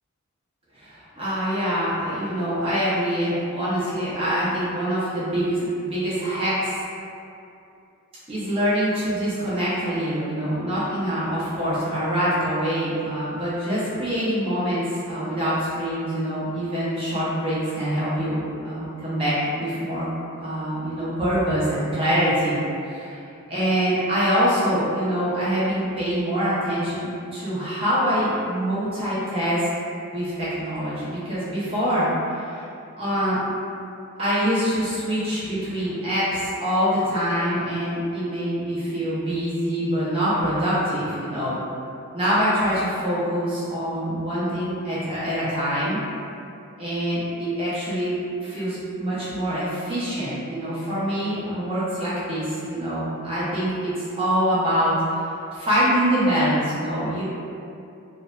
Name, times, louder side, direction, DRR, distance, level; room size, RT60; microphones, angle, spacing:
voice 1, 0.7-6.8 8.3-20.1 20.4-23.2 23.5-29.7 30.1-32.6 33.0-33.4 34.2-41.6 42.1-46.0 46.8-57.2, equal, 25° right, -11 dB, 0.6 m, -25 dB
2.6 x 2.1 x 2.2 m, 2.6 s
head